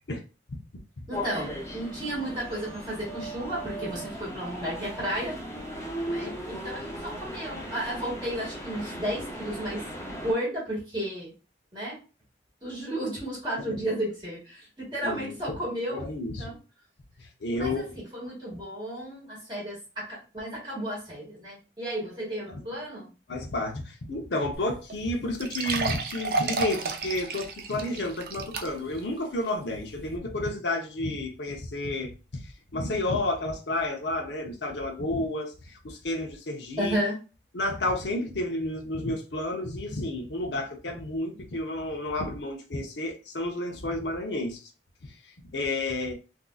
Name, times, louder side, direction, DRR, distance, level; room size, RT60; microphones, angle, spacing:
sound 1, 1.1-10.3, equal, 15° left, 0.7 m, -37 dB
voice 1, 1.1-5.4 6.1-9.8 10.1-11.3 11.7-12.0 12.6-16.0 16.4-16.6 17.5-23.1 36.8-37.2, right 1 dB, 25° right, 1.8 m, -33 dB
voice 2, 15.0-16.5 17.2-18.0 22.5-22.6 23.3-37.0 37.5-44.7 45.0-46.1, left 1 dB, 80° left, 0.8 m, -31 dB
sound 2, 24.5-24.6 24.9-25.0 25.4-29.0 29.5-29.6 30.1-30.2, right 4 dB, 55° right, 0.5 m, -31 dB
3.7 x 2.7 x 2.3 m
head